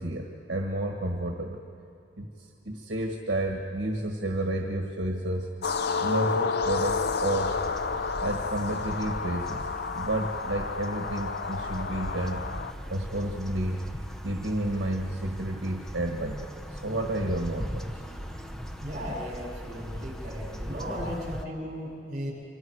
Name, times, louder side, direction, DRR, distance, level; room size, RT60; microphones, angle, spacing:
voice 1, 0.0-1.6 2.2-5.5 6.0-7.6 8.2-9.7 9.9-12.4 12.9-13.8 14.2-18.0, right 1 dB, 65° right, 1 dB, 1.6 m, -31 dB
sound 1, 5.6-12.7, left 5 dB, 60° left, 0.7 m, -30 dB
sound 2, 6.6-21.4, equal, 5° left, 0.9 m, -39 dB
voice 2, 18.8-22.3, equal, 45° right, -2 dB, 6.6 m, -36 dB
28.0 x 25.0 x 4.9 m, 2.5 s
head